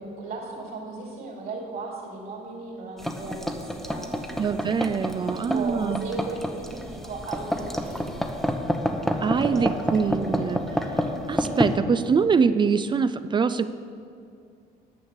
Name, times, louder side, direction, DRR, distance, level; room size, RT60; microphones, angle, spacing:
voice 1, 0.0-4.3 5.3-8.2 9.2-9.9, right 3 dB, 60° right, -1 dB, 3.1 m, -36 dB
sound 1, 3.0-11.8, equal, ahead, 0.8 m, -29 dB
voice 2, 4.4-6.1 9.2-13.7, right 5 dB, 30° right, 12 dB, 0.3 m, -24 dB
9.6 x 6.4 x 7.3 m, 2.4 s
cardioid pair, 110°, 17 cm